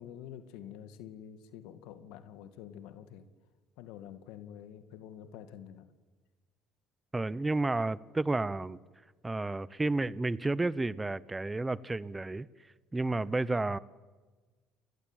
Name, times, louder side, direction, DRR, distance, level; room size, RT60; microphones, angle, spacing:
voice 1, 0.0-3.3 3.8-5.9, left 9 dB, 85° left, 10 dB, 2.2 m, -47 dB
voice 2, 7.1-8.8 9.2-12.5 12.9-13.8, right 2 dB, 10° right, 19 dB, 0.9 m, -31 dB
30.0 x 21.5 x 9.2 m, 1.3 s
cardioid pair, 125°, 0 cm